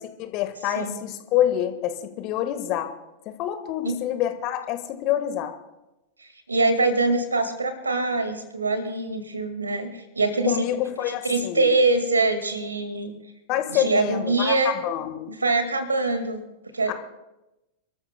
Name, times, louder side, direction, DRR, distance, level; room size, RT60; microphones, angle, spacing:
voice 1, 0.2-2.9 3.2-5.5 10.5-11.7 13.5-15.3 16.9-17.0, left 11 dB, 40° left, 9 dB, 1.6 m, -27 dB
voice 2, 6.2-10.7 11.1-13.1 13.7-14.7 15.3-16.4 16.7-16.9, right 3 dB, 75° right, 8 dB, 2.1 m, -24 dB
29.5 x 13.5 x 2.3 m, 0.95 s
figure-of-eight pair, 90°, 0 cm